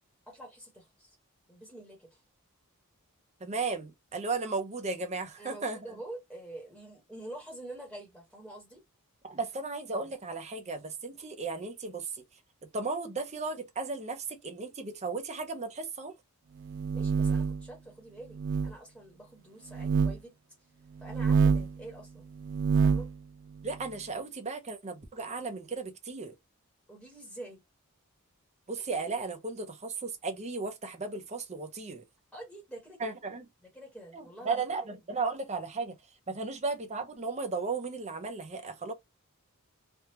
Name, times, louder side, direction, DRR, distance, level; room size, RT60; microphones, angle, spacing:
voice 1, 0.3-1.2 1.5-2.2 5.4-8.8 16.9-18.4 18.6-20.3 21.0-22.2 22.8-23.1 26.9-27.6 32.3-33.1 33.6-34.6, right 1 dB, ahead, 1.2 m, -46 dB
voice 2, 3.4-5.8 9.2-12.2 12.7-16.1 23.6-26.3 28.7-32.0 33.0-33.4 34.1-35.9 36.3-38.9, right 4 dB, 30° right, 0.7 m, -35 dB
sound 1, 16.6-17.6 18.3-18.7 19.7-20.2 21.0-21.7 22.4-23.1, right 5 dB, 55° right, 0.3 m, -26 dB
3.4 x 2.3 x 2.9 m
head